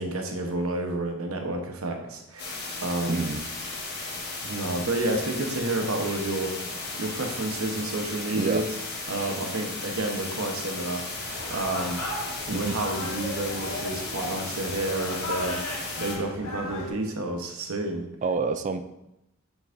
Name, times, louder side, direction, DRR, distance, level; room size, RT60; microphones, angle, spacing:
voice 1, 0.0-2.6 2.8-3.2 4.4-8.7 9.1-12.0 12.5-18.1, right 2 dB, 75° right, 3 dB, 1.1 m, -30 dB
sound 1, 2.4-16.2, left 3 dB, 50° left, 1.6 m, -35 dB
voice 2, 3.1-3.4 8.4-8.7 12.5-12.8 18.2-18.8, right 4 dB, 35° right, 9 dB, 0.4 m, -28 dB
sound 2, 11.1-16.9, left 1 dB, 80° left, 1.9 m, -35 dB
8.0 x 6.0 x 2.6 m, 0.86 s
head